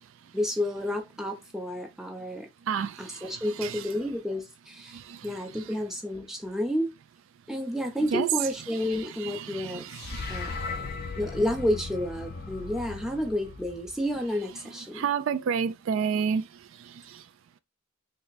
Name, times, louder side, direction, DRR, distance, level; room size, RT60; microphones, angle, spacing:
voice 1, 0.3-2.5 3.0-6.9 7.5-9.8 10.3-10.5 11.2-15.1, left 1 dB, ahead, 0.6 m, -30 dB
voice 2, 2.7-3.9 4.9-5.7 8.1-8.3 8.7-10.6 14.9-16.5 17.1-17.2, right 7 dB, 65° right, 0.3 m, -31 dB
sound 1, 9.9-14.3, left 4 dB, 50° left, 0.5 m, -37 dB
3.4 x 2.1 x 3.9 m
head